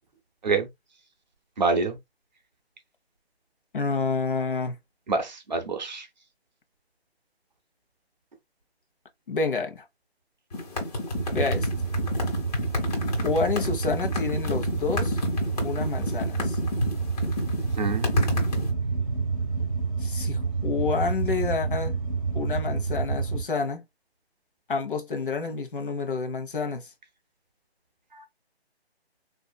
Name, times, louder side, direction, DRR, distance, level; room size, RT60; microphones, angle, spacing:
voice 1, 1.6-2.0 5.1-6.1 17.8-18.1 28.1-28.3, right 4 dB, 45° right, 0.8 m, -26 dB
voice 2, 3.7-4.8 9.3-9.8 11.3-11.7 13.2-15.2 15.6-16.6 20.0-22.0 22.3-23.8 24.7-26.9, left 4 dB, 55° left, 1.0 m, -29 dB
sound 1, 10.5-18.7, left 2 dB, 35° left, 1.5 m, -29 dB
sound 2, 11.1-23.4, right 4 dB, ahead, 0.7 m, -29 dB
4.1 x 2.7 x 2.2 m
figure-of-eight pair, 155°, 32 cm